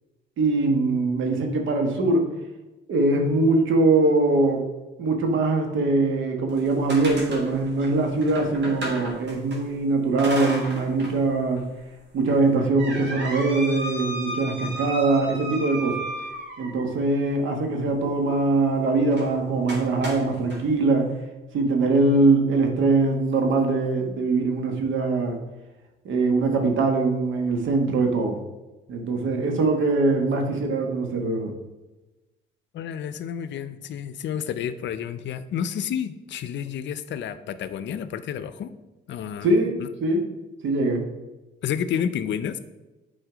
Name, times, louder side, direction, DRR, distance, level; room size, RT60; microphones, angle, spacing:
voice 1, 0.4-2.3 2.9-4.6 5.0-11.6 12.1-16.0 16.6-21.1 21.5-25.4 26.0-28.4 28.9-31.5 39.4-40.2 40.6-41.0, right 3 dB, 75° right, 3 dB, 1.3 m, -22 dB
sound 1, 6.5-9.6 10.2-11.2 11.6-11.7 12.3-16.9 19.1-19.3 19.7-20.6, right 1 dB, 60° right, 2.2 m, -34 dB
voice 2, 32.7-38.7 39.1-39.5 39.8-39.9 41.6-42.6, left 8 dB, 65° left, 13 dB, 0.5 m, -30 dB
7.9 x 4.1 x 5.0 m, 1.1 s
cardioid pair, 90°, 20 cm